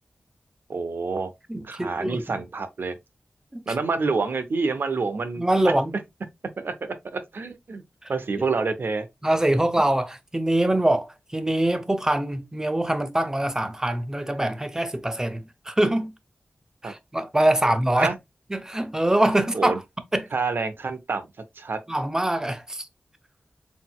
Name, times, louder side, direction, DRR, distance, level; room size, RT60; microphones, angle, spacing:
voice 1, 0.7-1.3 1.6-3.0 3.7-5.7 6.6-7.8 8.1-9.1 16.8-16.9 17.9-18.1 19.5-19.8 20.3-21.3 21.6-21.8, right 4 dB, 65° right, 0.7 m, -27 dB
voice 2, 1.5-2.2 3.5-3.7 5.4-6.0 8.0-8.1 8.4-8.5 9.2-16.1 16.8-18.1 18.5-19.8 20.1-20.3 21.9-22.9, right 1 dB, 15° right, 0.6 m, -24 dB
4.0 x 4.0 x 2.3 m
wide cardioid pair, 100°, 4 cm